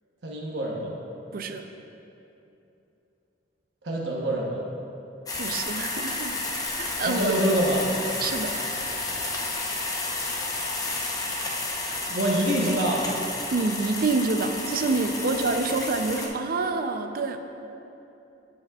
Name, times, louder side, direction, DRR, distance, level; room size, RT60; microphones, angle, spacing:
voice 1, 0.2-1.0 3.8-4.6 7.0-7.9 12.1-13.1, right 1 dB, 70° right, -3 dB, 1.0 m, -25 dB
voice 2, 1.3-1.6 5.4-6.3 6.8-7.3 8.2-8.5 13.5-17.4, right 3 dB, 55° right, 7 dB, 0.5 m, -27 dB
sound 1, 5.3-16.3, left 2 dB, 20° left, 0.7 m, -31 dB
15.0 x 5.3 x 2.3 m, 2.9 s
head